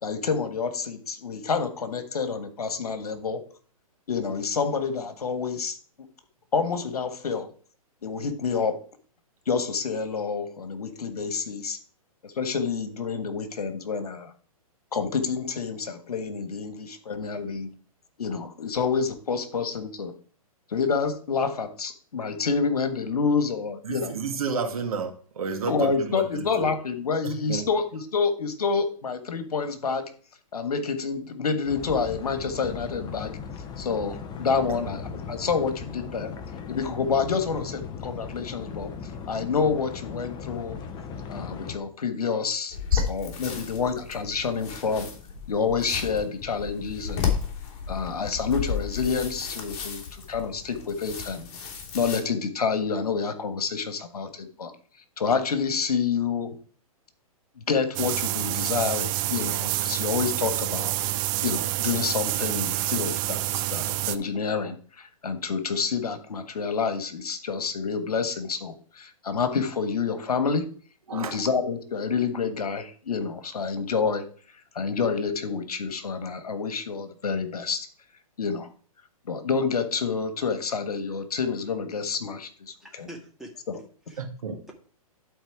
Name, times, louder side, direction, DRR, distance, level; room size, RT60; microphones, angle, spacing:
voice 1, 0.0-3.4 4.1-5.8 6.5-7.5 8.0-8.8 9.5-11.8 12.2-14.3 14.9-17.7 18.2-20.1 20.7-24.1 25.7-30.1 30.5-33.4 33.8-36.3 36.7-38.9 39.3-40.8 41.3-42.8 43.1-45.1 45.5-47.3 47.9-51.5 51.9-54.7 55.2-56.5 57.7-60.9 61.4-70.6 71.1-74.2 74.7-77.9 78.4-78.7 79.3-83.1 83.7-83.8, left 5 dB, 80° left, 9 dB, 1.5 m, -28 dB
voice 2, 23.8-26.7 27.2-27.7 42.9-43.0 71.1-71.4 84.2-84.6, right 5 dB, 70° right, 4 dB, 2.0 m, -31 dB
sound 1, 31.6-41.8, left 6 dB, 25° left, 0.9 m, -38 dB
sound 2, 42.7-52.2, left 7 dB, 40° left, 3.1 m, -33 dB
sound 3, 58.0-64.2, right 16 dB, 35° right, 0.6 m, -28 dB
voice 3, 82.8-84.2, right 1 dB, ahead, 0 dB, 1.9 m, -46 dB
12.0 x 4.4 x 4.8 m, 0.43 s
hypercardioid pair, 125°, 19 cm